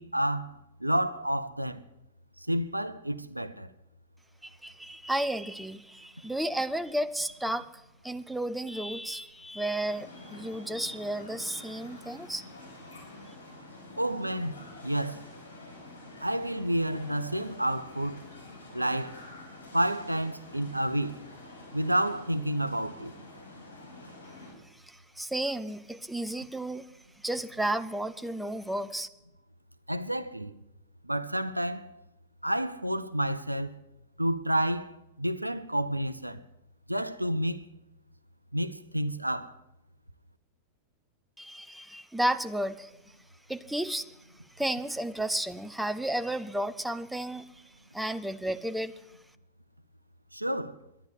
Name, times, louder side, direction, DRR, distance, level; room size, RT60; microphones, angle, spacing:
voice 1, 0.0-1.8 2.4-3.7 14.0-15.2 16.2-18.2 18.7-19.2 19.7-21.3 21.7-23.1 29.9-30.5 31.0-31.9 32.4-33.8 34.2-36.4 36.9-37.6 38.5-39.6 50.3-50.8, right 1 dB, 85° right, 0.5 m, -30 dB
voice 2, 4.4-7.7 8.0-12.4 24.8-26.9 27.2-29.1 41.4-42.9 43.5-44.1 44.6-47.5 47.9-48.9, right 1 dB, 5° right, 0.6 m, -32 dB
sound 1, 9.8-24.5, left 2 dB, 80° left, 4.6 m, -48 dB
11.0 x 10.5 x 8.3 m
figure-of-eight pair, 90°, 0 cm